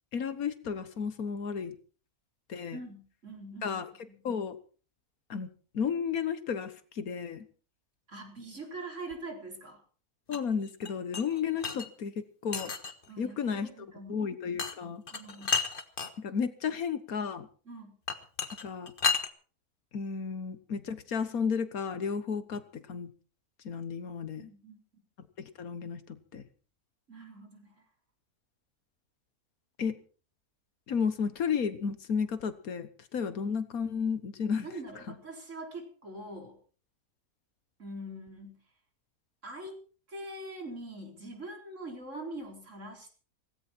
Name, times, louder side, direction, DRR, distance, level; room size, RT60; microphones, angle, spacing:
voice 1, 0.1-1.8 2.5-2.8 3.6-3.9 4.2-4.6 5.3-5.5 5.7-7.5 10.3-12.7 13.2-13.7 14.1-15.0 16.2-17.5 18.6-18.9 19.9-23.1 23.7-24.5 25.4-26.4 29.8-30.0 30.9-34.7, left 6 dB, 75° left, 12 dB, 1.7 m, -33 dB
voice 2, 2.7-3.8 4.1-4.2 8.1-9.8 13.1-14.3 15.1-15.5 17.7-17.9 24.4-24.8 27.1-27.8 34.6-36.6 37.8-38.6 39.4-39.7 40.1-43.1, right 1 dB, 55° right, 2 dB, 4.8 m, -43 dB
sound 1, 10.3-11.9 12.5-13.1 14.6-14.7 15.1-16.1 18.1-19.3, left 5 dB, 40° left, 1.5 m, -32 dB
18.0 x 16.5 x 4.5 m, 0.39 s
omnidirectional pair, 1.6 m